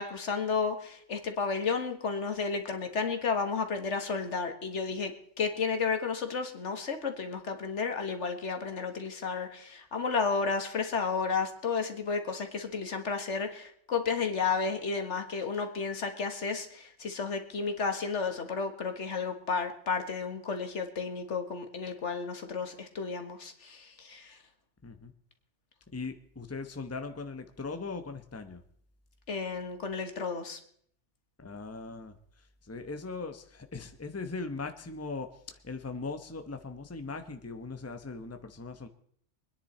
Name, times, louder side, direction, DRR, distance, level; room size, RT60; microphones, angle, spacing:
voice 1, 0.0-24.4 29.3-30.6, left 5 dB, 75° left, 6 dB, 1.8 m, -32 dB
voice 2, 25.9-28.6 31.4-32.1 32.7-33.4 33.7-35.3 35.7-38.9, left 3 dB, 15° left, 8 dB, 0.9 m, -39 dB
24.5 x 10.0 x 4.3 m, 0.63 s
omnidirectional pair, 1.2 m